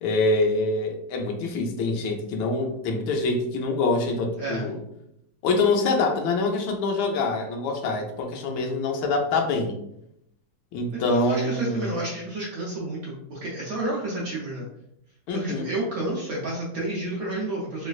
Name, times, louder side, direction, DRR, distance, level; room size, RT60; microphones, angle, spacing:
voice 1, 0.0-4.8 5.4-9.7 10.7-12.0 15.3-15.7, left 3 dB, 85° left, 2 dB, 1.4 m, -25 dB
voice 2, 10.9-14.6 15.3-17.9, right 2 dB, 70° right, -4 dB, 0.9 m, -30 dB
3.1 x 3.1 x 2.3 m, 0.77 s
omnidirectional pair, 2.1 m